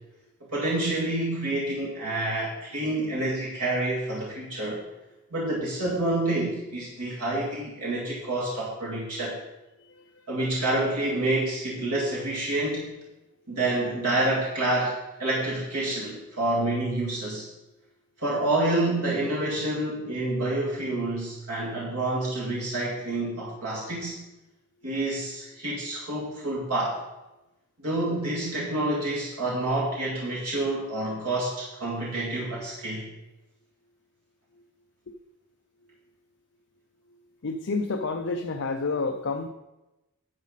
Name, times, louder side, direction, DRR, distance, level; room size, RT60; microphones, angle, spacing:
voice 1, 0.5-4.8 5.3-9.4 10.3-12.9 13.5-17.5 18.2-24.2 24.8-27.0 27.8-33.1, right 2 dB, 90° right, -5 dB, 2.2 m, -28 dB
voice 2, 37.4-39.5, left 3 dB, 55° left, 5 dB, 0.6 m, -29 dB
11.0 x 7.2 x 4.1 m, 0.98 s
head